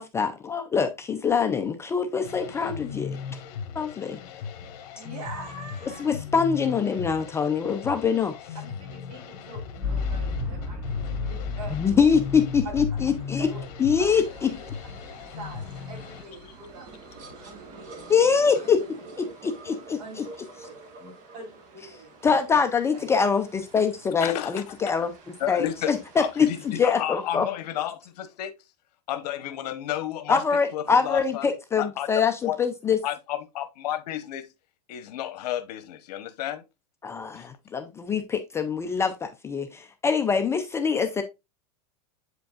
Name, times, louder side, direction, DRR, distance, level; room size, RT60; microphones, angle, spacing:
voice 1, 0.0-3.2 3.7-4.2 6.0-8.3 11.7-13.5 13.8-14.5 18.1-18.8 19.2-20.0 22.2-25.1 25.5-27.4 30.3-33.0 37.0-41.2, left 6 dB, 15° left, 0.4 m, -24 dB
sound 1, 2.2-16.2, left 6 dB, 60° left, 1.4 m, -37 dB
voice 2, 4.9-6.2 8.5-12.0 12.6-12.8 13.4-13.7 13.9-14.1 14.4-16.9 17.4-18.1 18.5-19.3 20.0-20.4 20.7-20.8 21.3-22.1 22.9-23.1, right 3 dB, 65° right, 3.8 m, -44 dB
sound 2, 9.8-18.4, left 3 dB, 20° right, 3.7 m, -36 dB
sound 3, 14.1-26.9, right 3 dB, 40° right, 1.5 m, -48 dB
voice 3, 24.2-24.6 25.4-28.5 29.1-30.4 30.7-31.5 31.8-32.6 33.0-34.5 34.9-36.6 37.3-37.5, left 12 dB, 75° left, 1.0 m, -32 dB
8.1 x 5.1 x 2.4 m
supercardioid pair, 150°, 20 cm